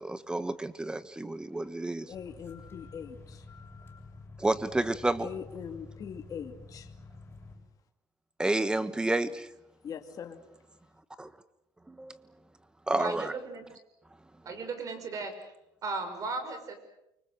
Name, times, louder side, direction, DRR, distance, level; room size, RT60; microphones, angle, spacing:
voice 1, 0.0-2.1 4.4-5.3 8.4-9.5 11.2-11.3 11.9-12.2 12.9-13.3, right 2 dB, 10° right, 1.4 m, -30 dB
voice 2, 2.0-3.4 5.2-6.9 9.8-10.4, left 7 dB, 40° left, 2.6 m, -41 dB
sound 1, 2.1-7.6, left 3 dB, 25° left, 7.4 m, -49 dB
voice 3, 12.9-13.6 14.4-15.5 15.8-16.7, right 3 dB, 40° right, 6.0 m, -36 dB
29.0 x 25.0 x 6.7 m
cardioid pair, 125°, 9 cm